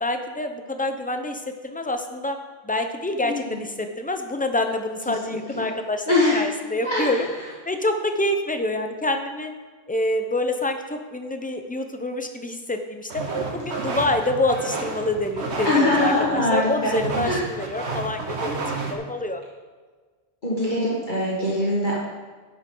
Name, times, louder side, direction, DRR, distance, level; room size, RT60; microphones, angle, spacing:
voice 1, 0.0-2.4 2.6-7.3 7.7-9.5 9.9-13.2 13.5-19.4, left 1 dB, 10° left, 6 dB, 0.6 m, -27 dB
voice 2, 5.3-5.7 6.1-6.4 6.8-7.1 15.6-16.9 17.2-17.4 20.4-22.0, left 1 dB, 45° left, -6 dB, 1.9 m, -22 dB
sound 1, 13.1-18.9, right 3 dB, 85° right, 1.6 m, -31 dB
11.0 x 9.8 x 3.9 m, 1.4 s
omnidirectional pair, 1.1 m